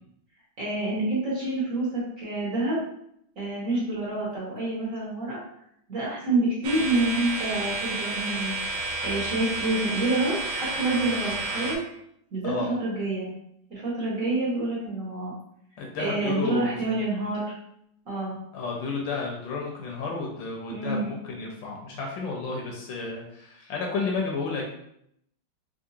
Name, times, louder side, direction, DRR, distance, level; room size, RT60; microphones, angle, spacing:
voice 1, 0.6-2.8 3.4-5.4 5.9-8.6 9.0-11.8 12.3-12.5 12.8-13.3 13.7-15.3 16.0-17.5 18.1-18.4 20.7-21.2, right 2 dB, 50° right, -7 dB, 1.2 m, -27 dB
sound 1, 6.6-11.8, right 3 dB, 80° right, 1.5 m, -31 dB
voice 2, 15.8-17.0 18.5-24.6, left 4 dB, 75° left, -1 dB, 1.3 m, -32 dB
3.7 x 2.6 x 2.7 m, 0.74 s
omnidirectional pair, 2.2 m